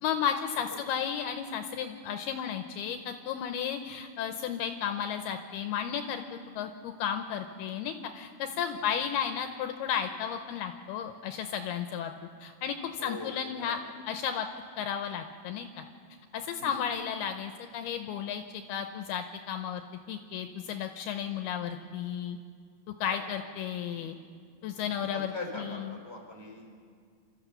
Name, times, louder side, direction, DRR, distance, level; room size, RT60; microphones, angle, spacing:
voice 1, 0.0-12.1 12.4-13.8 14.1-14.5 14.8-15.9 16.3-19.8 20.1-22.4 23.0-24.2 24.6-26.0, left 8 dB, 80° left, 6 dB, 2.6 m, -33 dB
voice 2, 13.0-13.3 13.7-13.8 16.6-16.8 23.1-23.3 23.9-24.2 25.1-26.8, left 2 dB, 5° right, 0 dB, 2.7 m, -42 dB
29.0 x 13.5 x 7.0 m, 2.1 s
omnidirectional pair, 4.9 m